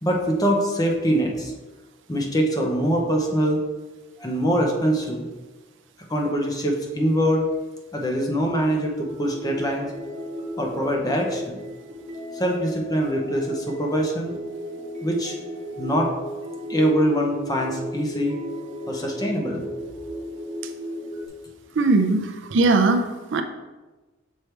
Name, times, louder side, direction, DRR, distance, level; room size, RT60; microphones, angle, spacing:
voice 1, 0.0-1.5 2.1-3.6 4.2-5.2 6.1-7.5 7.9-9.9 10.6-11.6 12.3-14.3 15.0-15.3 15.8-16.1 16.7-18.4 18.9-19.6, equal, 20° left, 1 dB, 0.8 m, -23 dB
sound 1, 9.0-21.3, equal, 35° right, 1.0 m, -35 dB
voice 2, 21.8-23.4, right 3 dB, 65° right, 7 dB, 0.5 m, -20 dB
6.4 x 4.5 x 3.3 m, 1.2 s
head